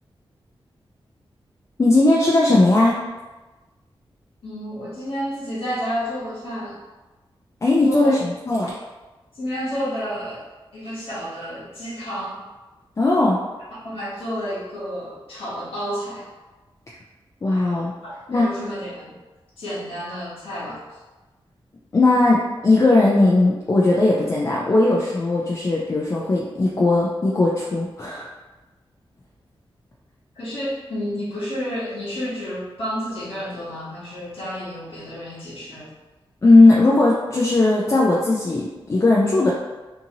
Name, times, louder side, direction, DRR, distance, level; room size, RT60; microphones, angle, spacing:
voice 1, 1.8-3.0 7.6-8.7 13.0-13.4 17.4-17.9 18.3-18.5 21.9-28.2 36.4-39.5, left 2 dB, 30° left, -4 dB, 0.4 m, -18 dB
voice 2, 4.4-6.8 7.8-8.1 9.3-10.4 10.7-12.4 13.8-16.3 18.0-19.1 19.6-21.0 30.3-35.9, equal, 80° left, -11 dB, 1.0 m, -30 dB
2.7 x 2.6 x 2.7 m, 1.2 s
wide cardioid pair, 120°, 9 cm